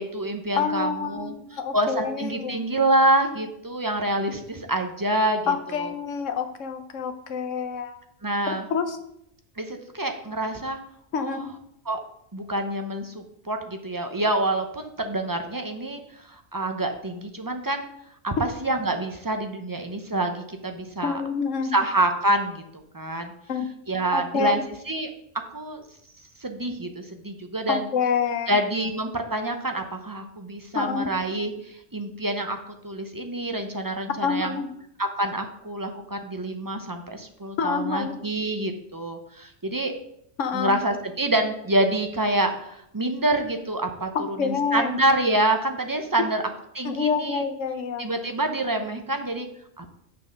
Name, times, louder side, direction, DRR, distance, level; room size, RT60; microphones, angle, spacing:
voice 1, 0.0-1.3 1.7-5.9 8.2-8.7 9.6-10.8 11.2-11.4 11.9-12.0 12.3-17.8 18.2-21.2 21.7-22.6 22.9-23.3 23.9-24.6 24.9-25.1 25.3-25.8 26.4-27.9 28.5-32.6 32.8-34.6 35.0-39.9 40.5-46.4 46.7-47.4 48.0-49.5 49.8-49.9, right 1 dB, 25° right, 5 dB, 0.6 m, -27 dB
voice 2, 0.6-2.6 5.5-8.0 8.5-9.0 11.1-11.5 21.0-21.7 23.5-23.7 24.1-24.6 27.7-28.6 30.7-31.1 34.2-34.7 37.6-38.2 40.4-40.7 44.1-44.9 46.8-48.1, left 6 dB, 85° left, 8 dB, 1.2 m, -27 dB
6.7 x 6.0 x 5.2 m, 0.75 s
omnidirectional pair, 1.3 m